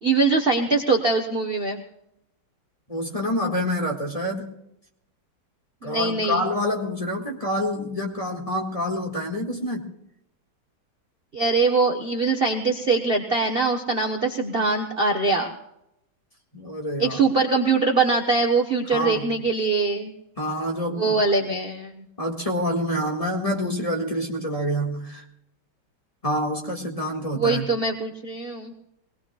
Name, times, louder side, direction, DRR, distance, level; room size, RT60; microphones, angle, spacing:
voice 1, 0.0-1.8 5.8-6.4 11.3-15.5 17.0-20.1 21.0-22.0 27.3-28.7, right 3 dB, 35° right, 1 dB, 1.1 m, -22 dB
voice 2, 2.9-4.5 5.8-9.9 16.5-17.2 18.9-19.3 20.4-21.2 22.2-25.2 26.2-27.7, equal, 20° left, -2 dB, 1.9 m, -27 dB
23.0 x 19.0 x 2.4 m, 0.82 s
omnidirectional pair, 2.2 m